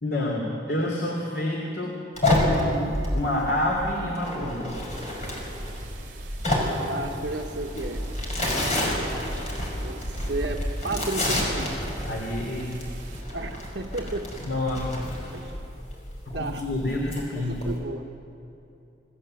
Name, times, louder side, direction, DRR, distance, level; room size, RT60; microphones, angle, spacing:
voice 1, 0.0-2.0 2.2-2.8 3.1-4.8 7.7-7.9 12.0-12.8 14.4-15.1 16.2-17.6, left 1 dB, 60° left, -1 dB, 3.3 m, -28 dB
sound 1, 2.2-17.8, left 1 dB, 40° left, 5.7 m, -29 dB
sound 2, 4.9-13.2, right 2 dB, 50° right, 4.7 m, -45 dB
voice 2, 6.8-8.0 9.8-11.7 13.3-14.3 15.3-15.6 16.3-16.6 17.5-18.0, right 2 dB, 70° right, 2 dB, 1.3 m, -33 dB
28.0 x 19.5 x 7.9 m, 2.8 s
head